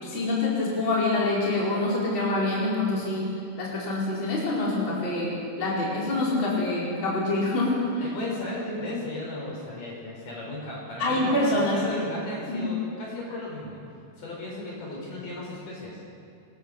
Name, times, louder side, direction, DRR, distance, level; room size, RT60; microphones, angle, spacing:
voice 1, 0.0-3.3 3.6-7.7 11.0-11.9 12.5-12.7, left 2 dB, 30° left, -5 dB, 5.4 m, -26 dB
voice 2, 8.0-11.3 11.7-13.8 14.2-16.0, left 2 dB, 60° left, -3 dB, 7.3 m, -35 dB
27.0 x 22.5 x 6.9 m, 2.6 s
omnidirectional pair, 4.2 m